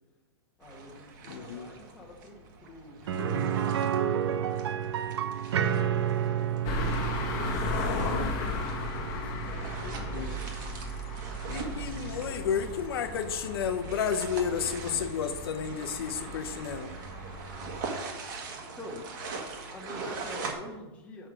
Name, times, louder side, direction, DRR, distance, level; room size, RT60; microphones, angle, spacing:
voice 1, 0.6-6.8 7.2-8.3 8.9-10.5 18.6-19.1 19.7-21.3, left 1 dB, 10° left, -1 dB, 1.3 m, -48 dB
sound 1, 0.6-20.5, right 4 dB, 50° right, 1.7 m, -43 dB
voice 2, 1.3-1.7 10.1-10.4 11.5-16.9, left 7 dB, 65° left, 7 dB, 0.8 m, -32 dB
sound 2, 3.1-12.8 13.2-13.3 15.7-15.8, right 9 dB, 90° right, 0.7 m, -32 dB
sound 3, 6.6-17.8, left 2 dB, 30° left, 1.3 m, -35 dB
6.7 x 6.5 x 6.1 m, 1.1 s
supercardioid pair, 160°, 13 cm